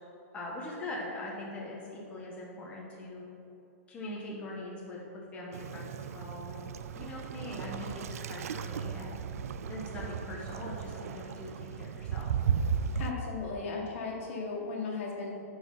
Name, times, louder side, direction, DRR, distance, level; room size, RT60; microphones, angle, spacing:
voice 1, 0.3-3.3 3.9-6.6 6.9-9.2 9.7-12.3, left 2 dB, 15° left, -4 dB, 1.3 m, -42 dB
Waves surf, 5.5-13.1, right 7 dB, 80° right, 0.4 m, -35 dB
voice 2, 13.0-15.3, left 4 dB, 60° left, -1 dB, 1.8 m, -36 dB
9.9 x 4.8 x 5.6 m, 2.9 s
hypercardioid pair, 150°, 8 cm